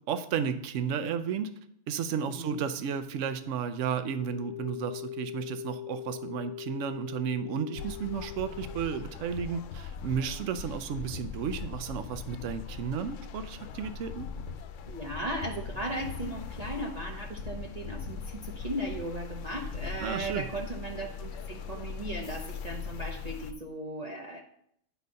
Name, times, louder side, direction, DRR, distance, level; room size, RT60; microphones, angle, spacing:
voice 1, 0.1-1.5 1.9-14.3 20.0-20.5, right 7 dB, 80° right, 10 dB, 1.0 m, -33 dB
voice 2, 2.3-2.6 10.4-10.5 14.9-24.4, right 1 dB, 40° right, -1 dB, 0.8 m, -37 dB
sound 1, 3.8-8.8, left 11 dB, 40° left, 0.9 m, -41 dB
sound 2, 7.8-23.5, left 6 dB, 80° left, 0.9 m, -40 dB
9.9 x 4.1 x 5.2 m, 0.71 s
omnidirectional pair, 1.3 m